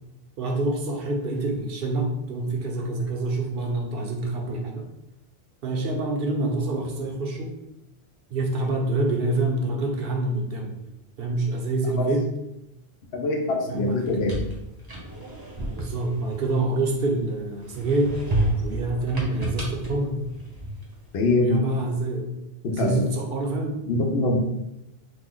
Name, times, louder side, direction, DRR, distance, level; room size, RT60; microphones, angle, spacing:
voice 1, 0.4-4.9 5.6-7.5 8.3-10.7 11.2-12.3 13.7-14.3 15.7-18.2 18.6-20.2 21.4-22.3 22.7-23.8, right 2 dB, 65° right, 1 dB, 0.8 m, -26 dB
voice 2, 13.1-14.4 21.1-21.6 22.6-23.0 23.9-24.4, left 2 dB, 80° left, 2 dB, 0.8 m, -23 dB
sound 1, 13.9-17.1 17.6-21.0, right 1 dB, 25° right, 0.7 m, -31 dB
3.1 x 2.1 x 3.7 m, 0.87 s
omnidirectional pair, 1.1 m